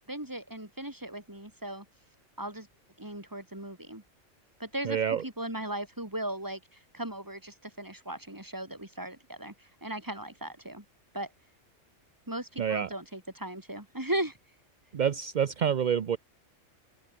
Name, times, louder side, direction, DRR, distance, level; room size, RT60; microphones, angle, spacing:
voice 1, 0.1-1.9 2.4-2.7 3.0-4.0 4.6-10.8 11.1-11.3 12.3-14.4, right 1 dB, 15° right, 3.2 m, -37 dB
voice 2, 4.8-5.2 12.6-12.9 14.9-16.2, right 8 dB, 45° right, 0.7 m, -27 dB
open air
omnidirectional pair, 1.3 m